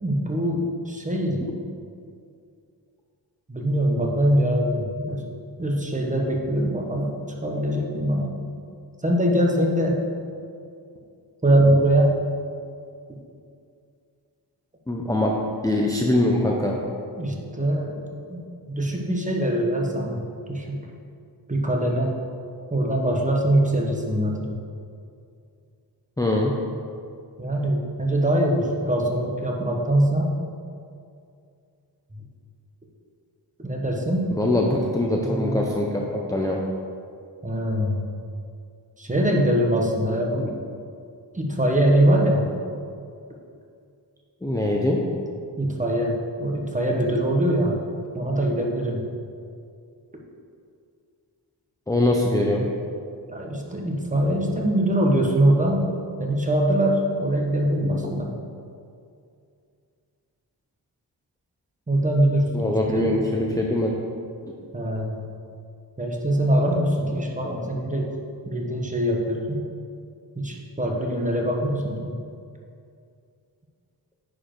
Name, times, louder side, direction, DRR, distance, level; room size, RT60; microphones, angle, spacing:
voice 1, 0.0-1.4 3.5-5.2 5.6-7.1 7.4-8.3 9.0-10.0 11.4-12.1 17.1-18.0 18.3-18.4 18.7-20.2 20.5-20.8 21.5-22.2 22.7-24.5 27.4-30.3 32.1-32.2 33.6-34.2 37.4-38.0 39.0-40.6 41.3-42.4 45.6-47.8 48.1-49.0 53.3-55.9 56.2-58.3 61.9-63.2 64.7-65.2 66.0-68.1 68.5-69.6 70.4-72.1, right 1 dB, 15° right, 0 dB, 1.1 m, -23 dB
voice 2, 14.9-15.3 15.6-16.8 26.2-26.6 34.3-36.7 44.4-45.0 51.9-52.7 57.8-58.1 62.5-64.0, left 1 dB, 10° left, -2 dB, 0.6 m, -23 dB
9.6 x 5.1 x 4.5 m, 2.4 s
wide cardioid pair, 120°, 43 cm